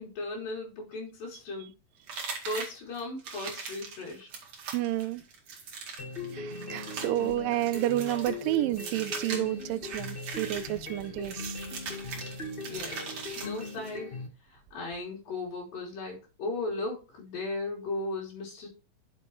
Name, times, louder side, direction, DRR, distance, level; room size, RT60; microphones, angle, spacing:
voice 1, 0.0-1.7 2.5-4.3 12.6-13.0 13.4-14.1 14.7-18.7, left 2 dB, 85° left, 5.1 m, -36 dB
sound 1, 2.1-14.0, right 5 dB, 55° right, 2.9 m, -41 dB
voice 2, 4.7-5.2 6.3-11.6, right 15 dB, 90° right, 2.3 m, -30 dB
sound 2, 6.0-14.3, left 3 dB, 55° left, 0.5 m, -40 dB
9.9 x 6.9 x 3.2 m
omnidirectional pair, 3.9 m